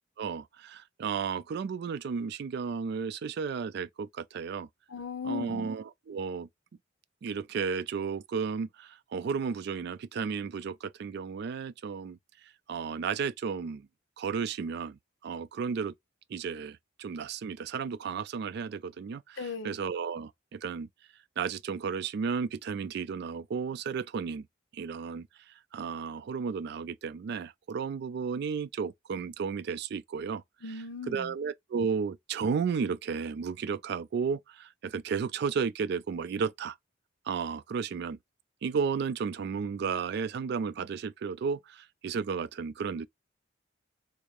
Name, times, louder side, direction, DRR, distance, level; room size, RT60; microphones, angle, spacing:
voice 1, 0.2-4.7 5.2-6.5 7.2-12.2 12.7-13.9 14.2-15.9 16.3-20.9 21.4-24.5 24.7-25.3 25.7-30.4 31.1-36.8 37.3-38.2 38.6-43.1, right 6 dB, 60° right, 0.3 m, -33 dB
voice 2, 4.9-5.7 19.4-19.8 30.6-31.3, left 5 dB, 85° left, 0.7 m, -37 dB
3.6 x 2.6 x 3.1 m
head